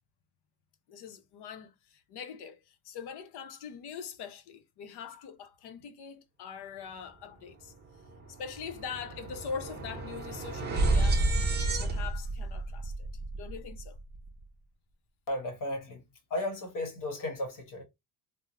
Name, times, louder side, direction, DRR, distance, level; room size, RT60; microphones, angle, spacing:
voice 1, 0.9-7.7 8.3-13.1 13.4-14.0, left 6 dB, 65° left, 0.8 m, -43 dB
sound 1, 7.6-7.7 8.0-14.3, right 2 dB, 25° right, 0.5 m, -31 dB
voice 2, 15.3-16.0 16.3-17.8, left 1 dB, 45° left, 1.2 m, -34 dB
3.5 x 2.1 x 2.9 m
cardioid pair, 175°, 43 cm